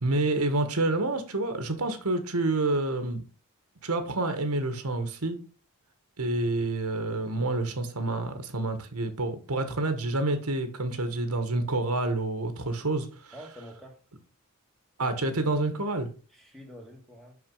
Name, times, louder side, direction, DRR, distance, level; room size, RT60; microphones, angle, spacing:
voice 1, 0.0-3.2 3.8-5.4 6.2-13.3 15.0-16.1, right 2 dB, 85° right, 1.4 m, -28 dB
voice 2, 13.3-14.0 16.3-17.4, equal, ahead, 1.6 m, -47 dB
6.2 x 5.7 x 5.5 m
head